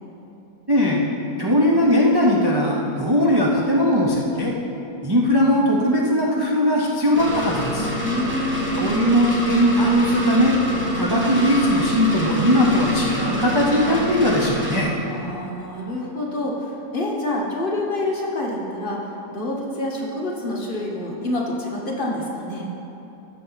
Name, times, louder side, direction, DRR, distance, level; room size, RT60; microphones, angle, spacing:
voice 1, 0.7-1.0 1.4-4.5 5.0-7.9 8.8-10.6 10.9-14.9, equal, 25° right, -3 dB, 0.6 m, -19 dB
sound 1, 7.1-14.8, equal, 10° right, 1.2 m, -26 dB
voice 2, 8.0-8.7 15.0-19.0 19.3-22.7, left 1 dB, 35° left, -3 dB, 1.3 m, -27 dB
14.5 x 6.6 x 4.0 m, 3.0 s
omnidirectional pair, 1.7 m